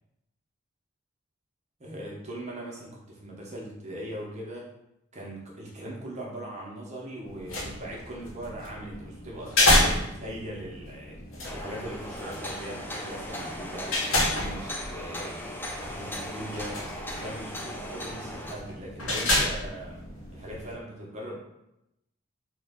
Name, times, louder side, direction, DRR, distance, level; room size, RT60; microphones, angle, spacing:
voice 1, 1.8-4.7 5.1-11.2 11.5-20.0 20.3-21.4, right 1 dB, 35° right, -3 dB, 0.6 m, -40 dB
sound 1, 7.2-20.7, left 1 dB, 80° left, 0.7 m, -30 dB
sound 2, 11.4-18.5, left 1 dB, 10° left, 0.3 m, -38 dB
2.9 x 2.1 x 3.4 m, 0.85 s
head